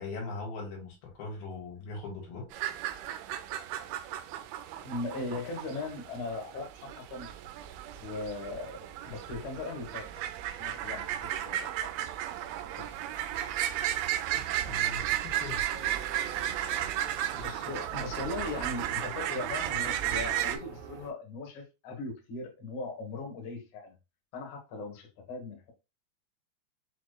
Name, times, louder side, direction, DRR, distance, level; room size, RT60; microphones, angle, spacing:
voice 1, 0.0-2.7 14.3-15.6, left 3 dB, 80° left, 3.3 m, -40 dB
sound 1, 2.5-20.6, right 12 dB, 85° right, 2.5 m, -34 dB
voice 2, 4.8-7.3 8.0-10.1 10.6-11.9 12.7-12.9 17.3-24.0 24.3-25.7, left 3 dB, 60° left, 2.4 m, -39 dB
sound 2, 15.7-21.1, right 4 dB, 65° right, 1.7 m, -47 dB
6.5 x 3.0 x 2.2 m
omnidirectional pair, 4.4 m